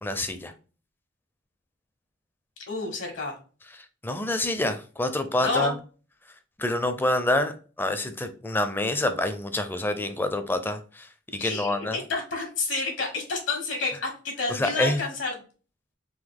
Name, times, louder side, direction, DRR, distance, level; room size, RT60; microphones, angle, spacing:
voice 1, 0.0-0.5 4.0-5.7 6.6-7.5 7.8-11.1 11.3-12.0 14.5-15.0, left 1 dB, 10° left, 0.4 m, -27 dB
voice 2, 2.7-3.4 5.4-5.7 11.4-15.4, left 3 dB, 75° left, 1.4 m, -29 dB
3.9 x 2.7 x 3.5 m
head